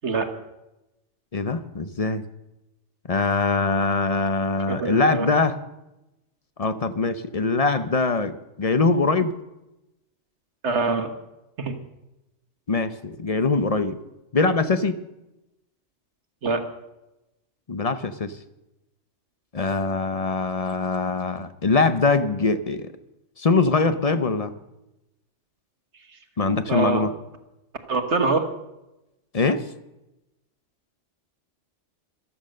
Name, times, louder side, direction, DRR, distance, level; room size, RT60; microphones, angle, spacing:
voice 1, 1.3-2.2 3.1-5.6 6.6-9.3 12.7-14.0 14.3-15.0 17.7-18.3 19.5-22.9 23.4-24.5 26.4-27.1 29.3-29.6, left 3 dB, 35° left, 11 dB, 0.8 m, -22 dB
voice 2, 4.7-5.3 10.6-11.1 11.6-11.8 16.4-16.7 26.7-27.1 27.9-28.5, right 4 dB, 65° right, 6 dB, 1.6 m, -24 dB
14.0 x 13.0 x 6.5 m, 0.94 s
omnidirectional pair, 1.3 m